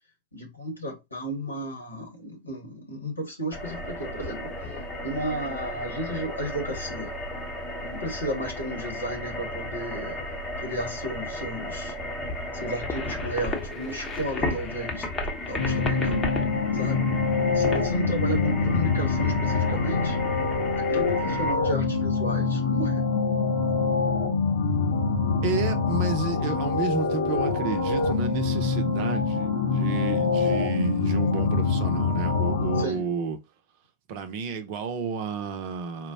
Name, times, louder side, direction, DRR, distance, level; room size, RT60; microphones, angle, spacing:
voice 1, 0.3-4.5 5.0-7.1 7.9-10.2 10.6-11.9 12.6-15.1 15.5-16.3 16.8-17.1 17.5-20.2 20.7-23.0 32.8-33.0, right 1 dB, 85° left, 1.2 m, -33 dB
sound 1, 3.5-21.5, left 1 dB, 20° left, 0.8 m, -34 dB
sound 2, 15.6-32.9, left 4 dB, 65° left, 0.6 m, -25 dB
voice 2, 25.4-33.4 34.1-36.1, right 5 dB, 50° right, 0.6 m, -31 dB
4.3 x 2.1 x 2.6 m
figure-of-eight pair, 90°, 0 cm